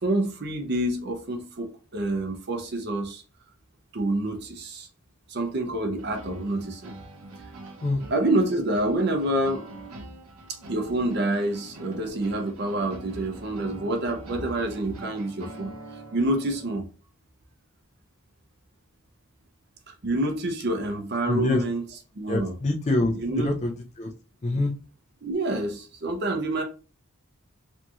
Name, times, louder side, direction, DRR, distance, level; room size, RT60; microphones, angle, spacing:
voice 1, 0.0-3.2 3.9-4.9 5.3-6.9 8.1-9.6 10.7-15.7 16.1-16.9 19.9-21.8 22.1-22.6 23.1-23.5 25.2-26.6, right 1 dB, 50° right, 0.5 m, -27 dB
sound 1, 6.0-16.8, right 2 dB, 85° right, 0.7 m, -44 dB
voice 2, 21.2-21.6 22.3-24.1 24.4-24.7, left 2 dB, 30° left, 0.4 m, -25 dB
2.9 x 2.6 x 2.3 m
head